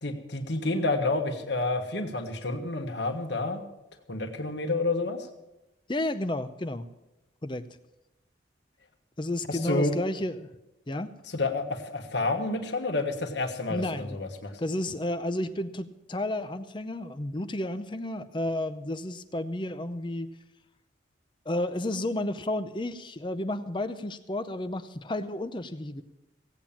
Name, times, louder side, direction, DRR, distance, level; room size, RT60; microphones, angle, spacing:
voice 1, 0.0-3.6 4.1-5.3 9.5-9.9 11.3-14.5, left 2 dB, 65° left, 4 dB, 1.5 m, -29 dB
voice 2, 5.9-6.9 7.4-7.6 9.2-10.5 10.9-11.1 13.7-14.2 14.6-20.4 21.5-26.0, left 1 dB, 25° left, 10 dB, 0.6 m, -32 dB
16.5 x 8.8 x 7.3 m, 0.94 s
head